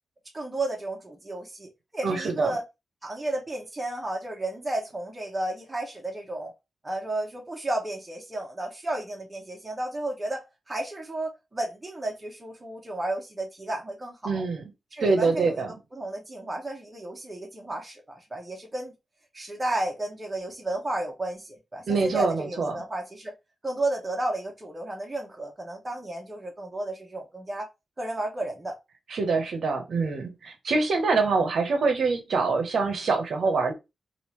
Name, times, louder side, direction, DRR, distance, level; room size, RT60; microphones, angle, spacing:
voice 1, 0.3-2.6 3.0-6.5 6.8-14.4 14.9-18.9 19.3-23.3 23.6-27.7 28.0-28.7, right 1 dB, 15° right, 0.9 m, -33 dB
voice 2, 2.0-2.5 14.2-14.6 15.0-15.7 21.9-22.8 29.1-33.7, right 4 dB, 60° right, 0.8 m, -25 dB
3.6 x 2.5 x 3.0 m
wide cardioid pair, 165°, 0 cm